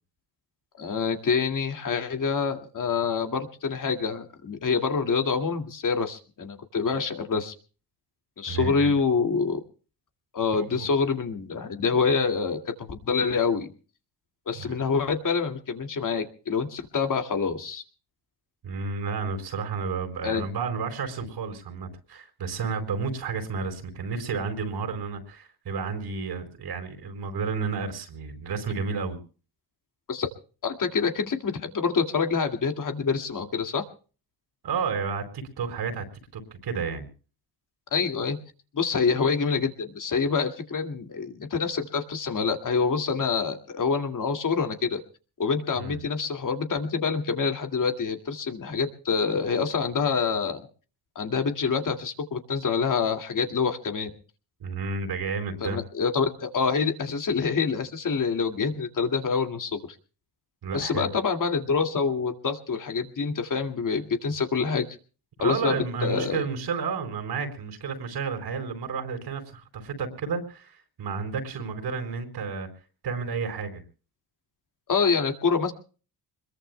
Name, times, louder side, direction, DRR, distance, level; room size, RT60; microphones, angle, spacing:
voice 1, 0.8-7.5 8.4-9.6 10.3-13.7 14.5-17.8 20.2-20.4 30.1-30.3 30.6-33.8 37.9-38.4 38.7-45.0 45.4-50.6 51.2-54.1 55.6-59.8 60.7-64.9 65.4-66.4 74.9-75.7, left 5 dB, 45° left, 6 dB, 2.2 m, -26 dB
voice 2, 8.5-8.9 10.5-10.9 14.6-14.8 18.6-29.2 34.6-36.0 36.3-37.1 45.7-46.0 54.6-55.8 60.6-61.1 65.4-72.7 73.0-73.8, right 5 dB, 65° right, 8 dB, 4.6 m, -31 dB
25.5 x 21.5 x 2.2 m, 0.38 s
cardioid pair, 85°, 42 cm